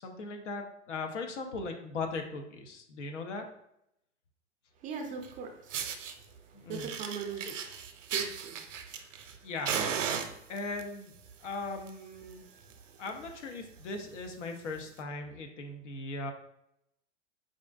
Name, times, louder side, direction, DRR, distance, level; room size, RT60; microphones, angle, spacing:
voice 1, 0.0-3.4 6.5-6.9 7.4-7.5 9.4-10.0 10.5-11.1 11.4-12.4 13.0-16.3, left 3 dB, 70° left, 5 dB, 0.8 m, -39 dB
voice 2, 4.8-6.0 6.7-7.5 8.1-8.6 9.3-9.5 12.3-12.9, right 6 dB, 20° right, 2 dB, 0.4 m, -41 dB
Fire, 5.2-5.3 5.7-6.1 6.7-9.3 9.6-10.8 11.6-11.9 12.2-12.3 12.7-12.8 13.0-13.3 13.8-13.9 14.8-14.9, right 7 dB, 80° right, 0.6 m, -35 dB
5.0 x 2.6 x 2.4 m, 0.79 s
hypercardioid pair, 100°, 37 cm